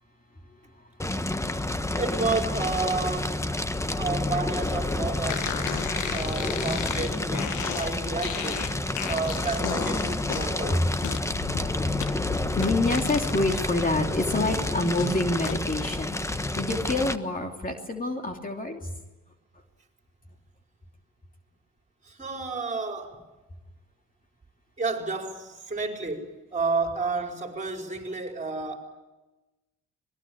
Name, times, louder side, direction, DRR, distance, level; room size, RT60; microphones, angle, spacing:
Fire, 1.0-17.2, left 2 dB, 10° left, 1.2 m, -29 dB
voice 1, 1.9-3.4 3.9-5.7 6.1-8.7 9.1-10.9 22.0-23.2 24.8-28.8, right 3 dB, 25° right, 3 dB, 4.8 m, -31 dB
sound 1, 5.3-13.6 14.0-15.6, left 9 dB, 80° left, 1.6 m, -35 dB
voice 2, 11.5-11.9 12.6-18.9, left 2 dB, 30° left, 3 dB, 2.8 m, -27 dB
26.0 x 21.0 x 8.8 m, 1.1 s
cardioid pair, 90°, 30 cm